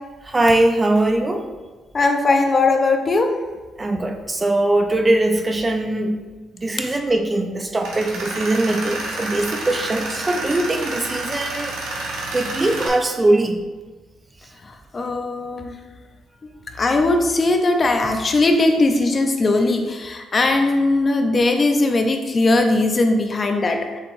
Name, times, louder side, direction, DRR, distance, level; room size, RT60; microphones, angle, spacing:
voice 1, 0.2-1.5 3.8-6.2 6.6-11.8 12.3-13.6, right 2 dB, 25° right, 5 dB, 0.4 m, -21 dB
voice 2, 1.9-3.3 6.8-7.0 14.6-15.7 16.8-24.0, left 2 dB, 35° left, 5 dB, 0.5 m, -19 dB
Tools, 7.8-12.9, right 2 dB, 90° right, 1.1 m, -29 dB
7.0 x 2.9 x 2.6 m, 1.3 s
cardioid pair, 90°, 0 cm